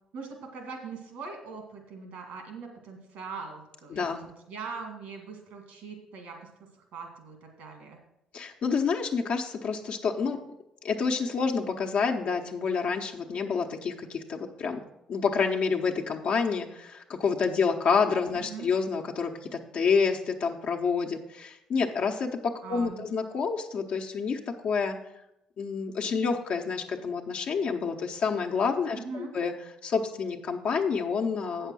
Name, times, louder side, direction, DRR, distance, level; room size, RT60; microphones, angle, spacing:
voice 1, 0.1-4.1 4.5-6.5 6.9-8.0 18.4-18.7 22.6-23.0 29.0-29.3, right 5 dB, 75° right, 3 dB, 2.1 m, -41 dB
voice 2, 3.9-4.3 8.3-10.4 10.8-14.8 15.1-25.0 25.6-29.5 29.8-31.7, left 5 dB, 60° left, 2 dB, 1.0 m, -28 dB
8.2 x 6.6 x 6.2 m, 0.84 s
supercardioid pair, 60°, 2 cm